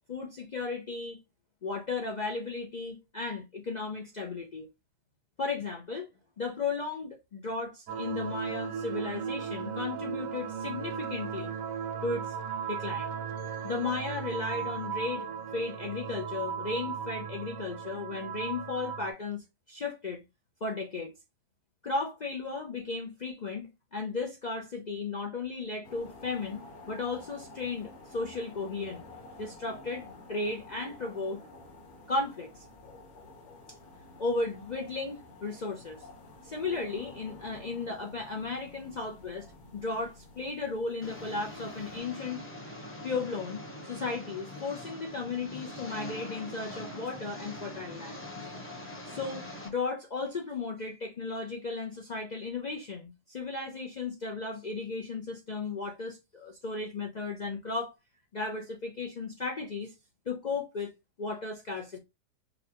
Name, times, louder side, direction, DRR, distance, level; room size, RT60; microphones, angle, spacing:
voice 1, 0.1-1.2 1.6-4.7 5.4-6.1 6.4-11.5 12.0-12.3 12.7-13.1 13.6-15.3 15.5-20.2 20.6-21.1 21.8-29.0 29.4-31.4 32.1-32.6 34.2-36.1 36.4-39.5 39.7-42.4 43.0-48.2 49.0-57.9 58.3-59.9 60.3-60.9 61.2-62.0, left 3 dB, 75° left, 0.4 m, -35 dB
sound 1, 7.9-19.1, right 7 dB, 65° right, 1.0 m, -36 dB
sound 2, 25.8-42.0, left 2 dB, 50° left, 1.4 m, -50 dB
Engine, 41.0-49.7, left 1 dB, 15° left, 0.5 m, -43 dB
5.1 x 2.2 x 2.9 m
omnidirectional pair, 1.6 m